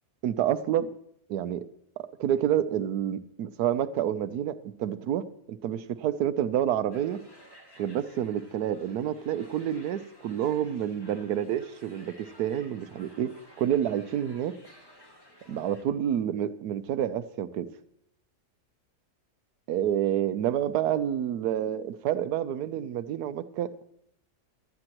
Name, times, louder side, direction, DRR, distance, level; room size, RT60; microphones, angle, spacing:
voice 1, 0.2-0.9 1.3-1.6 2.2-7.2 7.8-14.5 15.5-17.7 19.7-23.7, right 10 dB, 90° right, 13 dB, 1.2 m, -28 dB
sound 1, 6.9-15.8, equal, 15° left, 1.8 m, -54 dB
17.5 x 12.5 x 3.0 m, 0.72 s
omnidirectional pair, 1.6 m